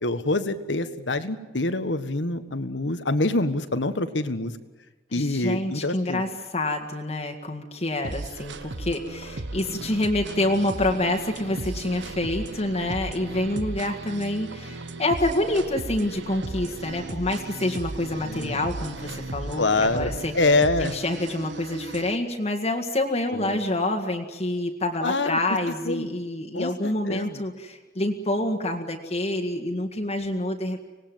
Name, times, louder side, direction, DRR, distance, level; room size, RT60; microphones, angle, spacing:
voice 1, 0.0-4.5 5.1-6.2 18.1-18.6 19.6-20.9 23.3-23.6 25.0-25.4 25.8-26.1 26.5-27.4, left 2 dB, 70° left, 11 dB, 1.5 m, -26 dB
voice 2, 5.1-20.3 20.8-30.8, left 1 dB, 35° left, 4 dB, 2.0 m, -27 dB
sound 1, 8.0-22.2, right 2 dB, 70° right, 1.3 m, -36 dB
26.0 x 19.0 x 9.3 m, 1.2 s
head